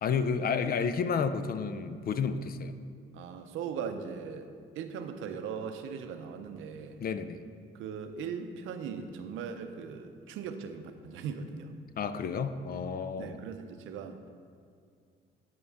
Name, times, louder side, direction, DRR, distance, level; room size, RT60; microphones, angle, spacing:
voice 1, 0.0-2.7 7.0-7.4 12.0-13.4, left 6 dB, 50° left, 11 dB, 0.5 m, -31 dB
voice 2, 3.1-4.5 4.8-7.0 7.7-11.7 13.2-14.3, right 6 dB, 85° right, 8 dB, 0.6 m, -39 dB
11.0 x 5.4 x 3.5 m, 2.2 s
cardioid pair, 90°, 20 cm